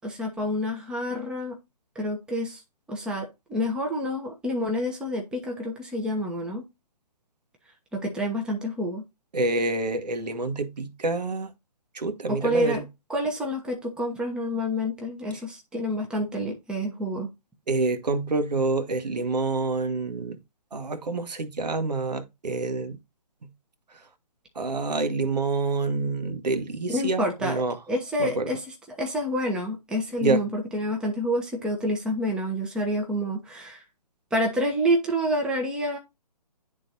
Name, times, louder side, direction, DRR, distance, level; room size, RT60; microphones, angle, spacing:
voice 1, 0.0-1.6 1.9-2.6 2.9-6.6 7.9-9.0 12.3-17.3 26.9-28.6 28.9-33.8 34.3-36.0, equal, 5° right, 0.9 m, -28 dB
voice 2, 9.3-11.5 11.9-12.8 17.7-20.4 20.7-23.0 24.5-27.8 28.2-28.5 30.2-30.4, right 3 dB, 80° right, 1.3 m, -27 dB
10.5 x 3.8 x 2.6 m
hypercardioid pair, 145°, 21 cm